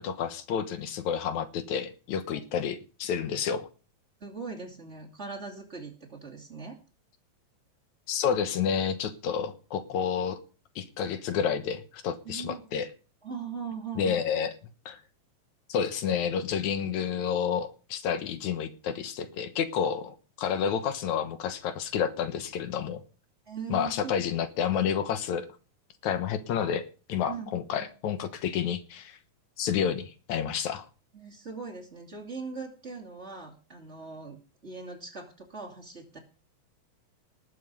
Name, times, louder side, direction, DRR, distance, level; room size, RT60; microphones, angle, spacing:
voice 1, 0.0-3.7 8.1-10.4 10.8-12.9 14.0-14.5 14.9-15.0 15.7-23.0 23.7-25.5 26.0-29.2 29.6-30.9, left 8 dB, 80° left, 10 dB, 2.6 m, -30 dB
voice 2, 4.2-6.8 12.2-12.6 13.2-14.2 23.5-24.1 27.3-27.9 31.1-36.2, right 5 dB, 25° right, 0 dB, 2.6 m, -40 dB
19.0 x 7.8 x 5.5 m, 0.36 s
omnidirectional pair, 3.3 m